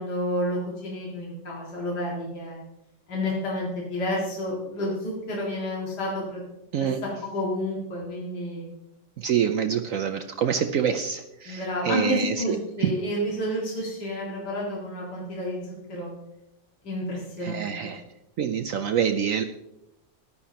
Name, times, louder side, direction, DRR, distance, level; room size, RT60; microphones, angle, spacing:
voice 1, 0.0-2.6 3.1-6.4 7.3-8.6 11.5-16.1 16.8-17.9, left 1 dB, 60° left, -4 dB, 2.6 m, -30 dB
voice 2, 9.2-12.9 17.4-18.0 18.4-19.4, right 8 dB, 75° right, 6 dB, 0.7 m, -26 dB
14.0 x 11.0 x 2.9 m, 0.89 s
omnidirectional pair, 2.0 m